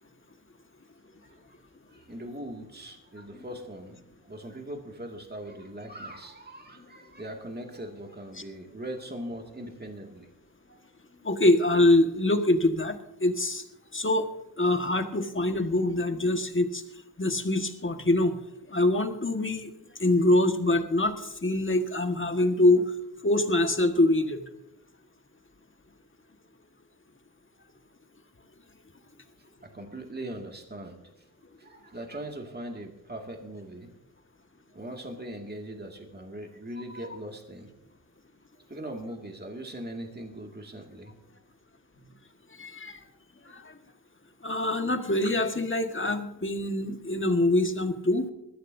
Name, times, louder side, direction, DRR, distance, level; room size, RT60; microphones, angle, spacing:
voice 1, 1.9-10.3 29.6-31.0 31.6-33.9 34.7-37.7 38.7-41.2, right 1 dB, 25° right, 3 dB, 2.3 m, -40 dB
voice 2, 11.2-13.6 13.9-14.3 14.6-16.8 17.2-18.4 18.7-19.7 20.0-22.9 23.2-24.4 42.5-43.0 43.4-43.8 44.4-48.3, left 1 dB, 30° left, 6 dB, 1.7 m, -24 dB
20.0 x 14.5 x 2.7 m, 0.88 s
cardioid pair, 50°, 38 cm